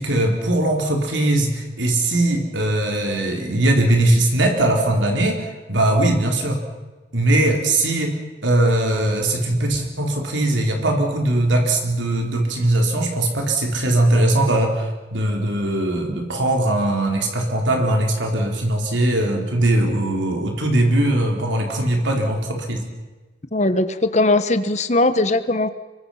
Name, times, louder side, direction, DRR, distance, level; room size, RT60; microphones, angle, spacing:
voice 1, 0.0-6.6 7.1-22.9, right 1 dB, 85° right, 2 dB, 4.1 m, -20 dB
voice 2, 23.5-25.7, left 2 dB, 40° left, 11 dB, 1.2 m, -19 dB
26.0 x 23.5 x 5.8 m, 1.2 s
head